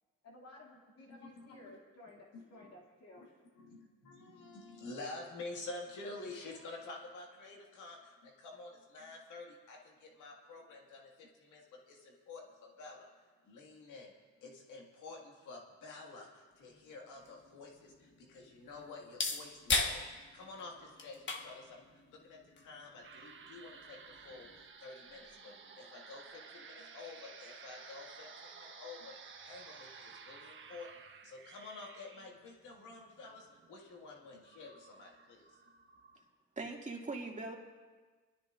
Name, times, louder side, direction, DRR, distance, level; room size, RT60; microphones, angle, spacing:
voice 1, 0.2-3.2, left 2 dB, 55° left, -3 dB, 2.4 m, -56 dB
voice 2, 1.1-1.7 2.3-2.7 3.1-3.3 3.6-13.1 13.4-14.1 14.4-29.2 29.4-30.9 31.2-35.5, left 3 dB, 85° left, 0 dB, 1.9 m, -49 dB
sound 1, 16.7-24.7, left 3 dB, 40° left, 1.4 m, -40 dB
sound 2, 23.0-36.2, right 5 dB, 40° right, 1.2 m, -54 dB
voice 3, 36.6-37.5, right 3 dB, 25° right, -1 dB, 2.2 m, -41 dB
23.5 x 13.0 x 2.5 m, 1.4 s
cardioid pair, 90°, 30 cm